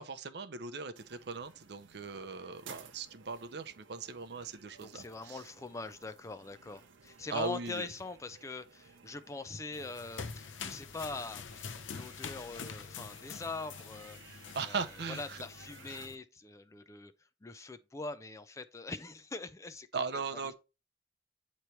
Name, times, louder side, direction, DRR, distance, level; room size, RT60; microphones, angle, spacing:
voice 1, 0.0-5.4 7.3-7.9 14.5-15.4 19.9-20.5, right 4 dB, 60° right, 0.6 m, -39 dB
sound 1, 0.9-16.1, right 5 dB, 90° right, 0.8 m, -57 dB
voice 2, 4.8-17.1 17.4-19.9, left 3 dB, 15° left, 0.4 m, -43 dB
sound 2, 9.7-16.2, left 6 dB, 80° left, 0.6 m, -45 dB
8.2 x 3.1 x 4.3 m
head